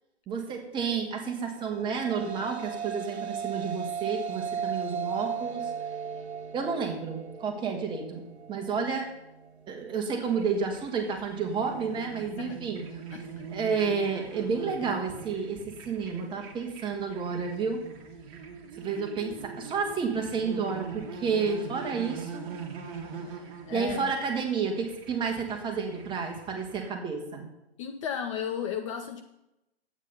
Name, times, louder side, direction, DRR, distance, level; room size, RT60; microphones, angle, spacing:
voice 1, 0.3-5.7 6.5-8.2 8.5-9.1 9.7-12.8 13.5-17.8 18.7-22.5 23.7-27.5, right 5 dB, 15° right, 2 dB, 1.8 m, -31 dB
sound 1, 1.6-10.2, right 7 dB, 85° right, 0.8 m, -37 dB
sound 2, 10.3-26.9, right 5 dB, 35° right, 1.8 m, -43 dB
voice 2, 23.6-24.1 27.8-29.2, left 7 dB, 30° left, 7 dB, 0.7 m, -34 dB
11.0 x 8.8 x 5.5 m, 0.89 s
figure-of-eight pair, 130°, 32 cm